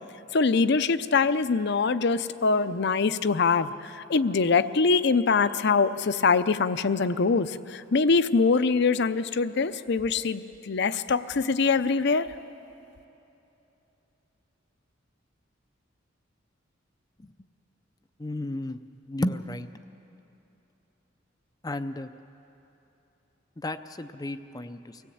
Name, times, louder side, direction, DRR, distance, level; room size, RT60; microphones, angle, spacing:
voice 1, 0.3-12.3, left 4 dB, 60° left, 13 dB, 0.6 m, -23 dB
voice 2, 18.2-18.8 19.1-19.7 21.6-22.1 23.6-25.0, left 1 dB, 20° left, 9 dB, 0.5 m, -33 dB
24.0 x 17.0 x 8.6 m, 3.0 s
head